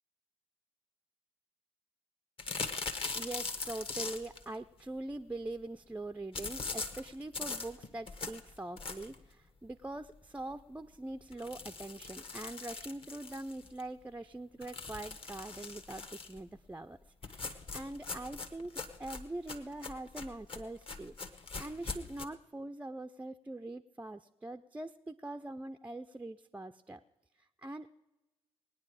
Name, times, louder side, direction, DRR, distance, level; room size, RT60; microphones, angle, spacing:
sound 1, 2.4-4.5 6.3-9.3 9.7-9.8 10.1-10.2 10.5-10.6 11.3-13.8 14.6-16.4 17.2-22.3, left 4 dB, 40° left, 1.2 m, -41 dB
voice 1, 3.1-27.0 27.6-27.9, right 2 dB, 10° right, 8 dB, 0.4 m, -43 dB
19.5 x 9.5 x 4.9 m, 1.0 s
figure-of-eight pair, 45°, 14 cm